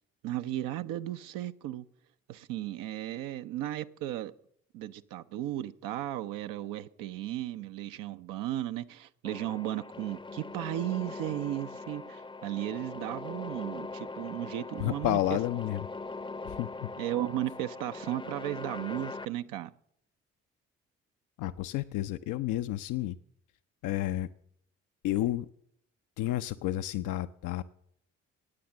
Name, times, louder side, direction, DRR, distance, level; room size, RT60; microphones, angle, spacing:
voice 1, 0.2-1.9 2.3-4.3 4.7-15.4 17.0-19.7, right 13 dB, 60° right, 0.7 m, -35 dB
sound 1, 9.2-19.3, left 3 dB, 15° left, 0.7 m, -41 dB
voice 2, 14.8-15.9 16.5-16.9 21.4-23.2 23.8-24.3 25.0-25.5 26.2-27.6, left 14 dB, 60° left, 0.6 m, -31 dB
16.5 x 9.3 x 7.2 m
figure-of-eight pair, 40°, 36 cm